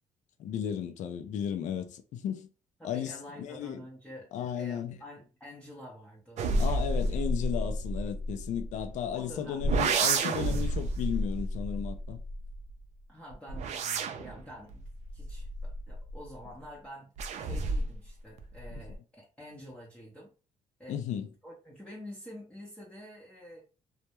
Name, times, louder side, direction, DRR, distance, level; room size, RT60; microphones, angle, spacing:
voice 1, 0.4-2.5 2.8-3.8 4.3-5.0 6.6-12.2 20.9-21.3, left 9 dB, 65° left, 0.4 m, -34 dB
voice 2, 2.8-4.3 4.6-6.5 6.7-7.1 9.1-9.7 13.1-14.8 15.1-17.1 17.4-20.3 20.8-21.0 21.4-23.6, equal, 10° left, 0.6 m, -48 dB
sound 1, 6.4-9.1 9.6-12.7 13.3-16.3 17.2-18.1 18.4-18.9, right 2 dB, 60° right, 0.4 m, -31 dB
2.2 x 2.0 x 2.9 m
cardioid pair, 100°, 13 cm